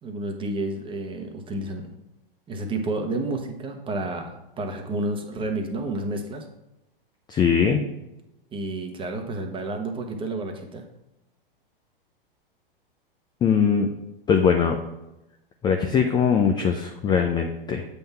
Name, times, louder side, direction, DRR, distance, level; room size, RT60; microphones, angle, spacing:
voice 1, 0.0-1.9 2.5-6.4 8.5-10.8, right 2 dB, 15° right, 4 dB, 1.0 m, -30 dB
voice 2, 7.3-7.8 13.4-13.9 14.3-14.8 15.6-17.9, left 6 dB, 15° left, 4 dB, 0.4 m, -21 dB
7.7 x 3.6 x 5.5 m, 0.93 s
hypercardioid pair, 110°, 29 cm